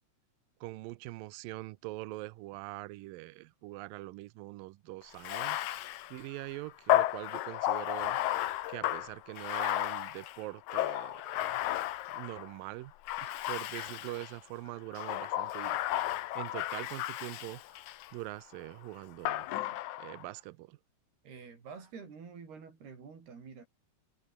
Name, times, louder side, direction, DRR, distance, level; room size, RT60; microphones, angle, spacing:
voice 1, 0.6-5.8 6.1-8.2 8.7-11.6 12.1-12.9 13.2-16.0 16.4-17.6 18.1-19.5 20.0-20.8, right 20 dB, 90° right, 2.0 m, -43 dB
Bathtub (filling or washing), 5.1-12.5 13.1-14.4 14.9-18.1 19.3-20.2, left 14 dB, 85° left, 1.7 m, -33 dB
voice 2, 21.2-23.7, right 5 dB, 65° right, 7.4 m, -48 dB
omnidirectional pair, 4.9 m